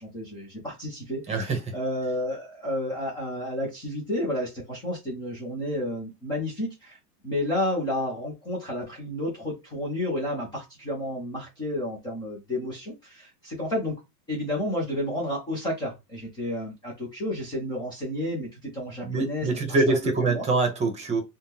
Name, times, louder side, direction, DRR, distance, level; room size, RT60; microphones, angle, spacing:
voice 1, 0.0-7.0 7.2-14.0 14.3-19.8 20.2-20.5, left 1 dB, 10° left, 0.3 m, -31 dB
voice 2, 1.3-1.6 19.0-21.2, right 3 dB, 15° right, 0.7 m, -24 dB
3.5 x 2.1 x 2.8 m
supercardioid pair, 140°, 48 cm